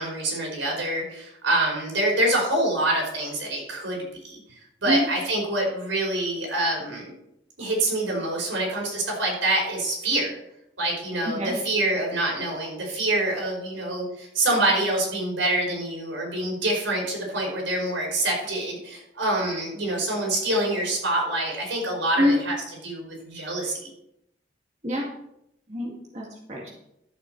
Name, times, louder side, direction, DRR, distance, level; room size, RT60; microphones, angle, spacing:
voice 1, 0.0-7.1 7.6-10.4 10.8-22.5 22.8-23.9, right 1 dB, 85° right, -2 dB, 5.0 m, -26 dB
voice 2, 25.7-26.7, left 1 dB, 35° right, -3 dB, 2.0 m, -25 dB
13.0 x 7.3 x 4.6 m, 0.80 s
head